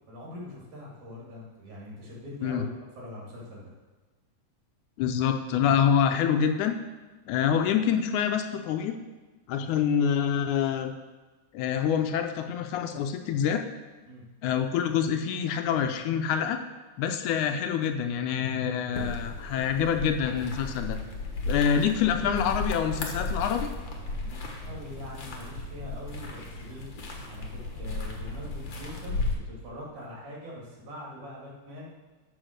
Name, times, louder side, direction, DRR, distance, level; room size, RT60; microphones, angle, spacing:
voice 1, 0.1-2.7 3.0-3.7 9.5-9.7 14.1-14.2 24.2-26.9 27.3-31.9, left 1 dB, 65° right, -4 dB, 3.7 m, -43 dB
voice 2, 5.0-6.7 7.3-9.0 9.5-10.9 11.5-13.6 14.4-16.6 17.0-21.0 21.5-23.7, left 8 dB, 80° left, 6 dB, 1.9 m, -26 dB
sound 1, 18.9-29.3, left 2 dB, 50° left, 1.5 m, -35 dB
13.0 x 4.4 x 6.4 m, 1.3 s
omnidirectional pair, 3.7 m